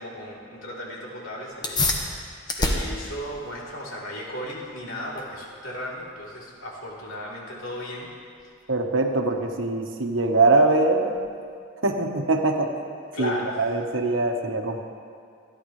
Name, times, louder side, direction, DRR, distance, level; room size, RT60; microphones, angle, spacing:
voice 1, 0.0-8.1 13.1-13.6, equal, 85° left, -5 dB, 3.6 m, -36 dB
sound 1, 1.5-11.6, left 2 dB, 20° left, 1.3 m, -33 dB
voice 2, 8.7-11.1 11.8-12.7 13.2-14.8, right 2 dB, 80° right, 3 dB, 1.3 m, -22 dB
26.5 x 11.0 x 3.3 m, 2.2 s
head